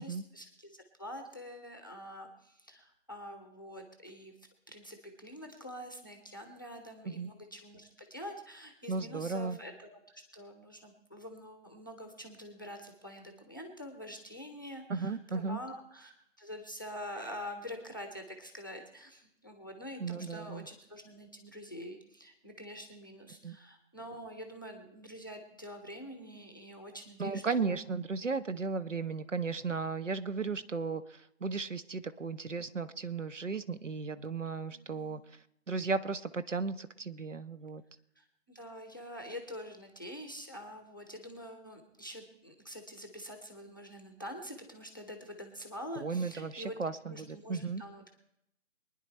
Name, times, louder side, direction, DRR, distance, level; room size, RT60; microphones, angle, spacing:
voice 1, 0.0-4.3 4.7-27.8 34.7-35.2 38.2-46.8 47.0-48.2, equal, 15° left, 5 dB, 0.8 m, -46 dB
voice 2, 8.9-9.6 14.9-15.6 20.0-20.7 23.4-23.6 27.2-31.0 31.4-35.2 35.7-37.8 46.0-47.8, right 4 dB, 65° right, 13 dB, 0.9 m, -35 dB
23.5 x 9.9 x 4.3 m, 0.80 s
figure-of-eight pair, 155°, 41 cm